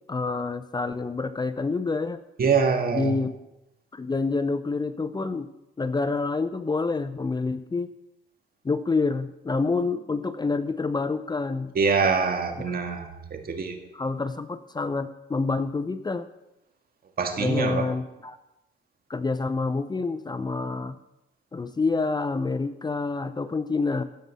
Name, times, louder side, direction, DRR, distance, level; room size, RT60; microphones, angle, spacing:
voice 1, 0.1-2.2 2.9-3.3 3.9-5.5 5.8-7.9 8.6-11.7 12.7-12.8 13.9-16.3 17.4-18.4 19.1-21.0 21.5-24.0, left 3 dB, 20° left, 12 dB, 0.6 m, -27 dB
voice 2, 2.4-3.2 11.8-13.8 17.2-17.8, right 5 dB, 50° right, 5 dB, 1.8 m, -24 dB
16.0 x 5.4 x 6.9 m, 0.92 s
cardioid pair, 90°, 20 cm